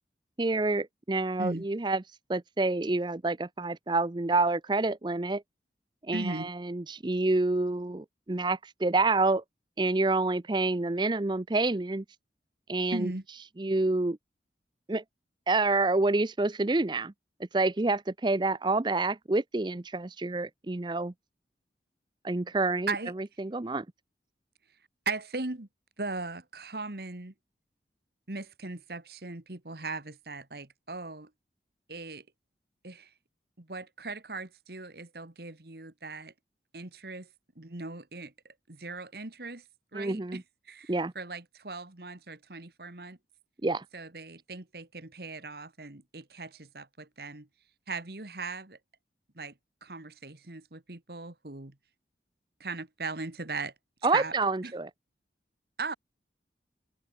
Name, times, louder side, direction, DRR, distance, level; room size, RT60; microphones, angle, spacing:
voice 1, 0.4-2.0 2.3-5.4 6.1-9.4 9.8-12.0 12.7-13.1 13.6-14.2 14.9-15.0 15.5-17.1 17.5-21.1 22.2-22.9 23.4-23.8 39.9-40.4 40.9-41.1 43.6-43.8 54.0-54.9, right 2 dB, 25° right, 0.6 m, -28 dB
voice 2, 6.1-6.5 12.9-13.2 22.9-23.1 25.1-25.7 26.0-27.3 28.3-31.3 31.9-32.3 32.8-33.1 33.6-36.3 36.7-37.3 37.6-39.6 39.9-43.2 43.9-47.5 47.9-48.8 49.4-49.5 49.8-51.8 52.6-53.7 54.0-54.3 54.6-54.7 55.8-55.9, right 3 dB, 60° right, 1.7 m, -38 dB
head